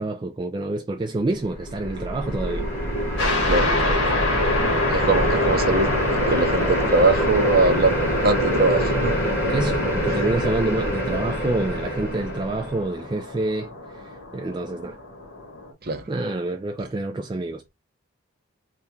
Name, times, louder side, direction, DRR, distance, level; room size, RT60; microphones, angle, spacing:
voice 1, 0.0-2.7 3.7-4.3 5.2-5.3 9.5-15.0 16.1-17.7, right 2 dB, 20° right, 0.3 m, -28 dB
sound 1, 1.4-12.8, equal, 10° left, 1.8 m, -25 dB
sound 2, 3.2-15.7, left 3 dB, 55° left, 1.8 m, -29 dB
voice 2, 3.4-3.8 4.9-9.1 15.8-16.0, right 3 dB, 45° right, 0.7 m, -22 dB
3.4 x 2.5 x 4.2 m
head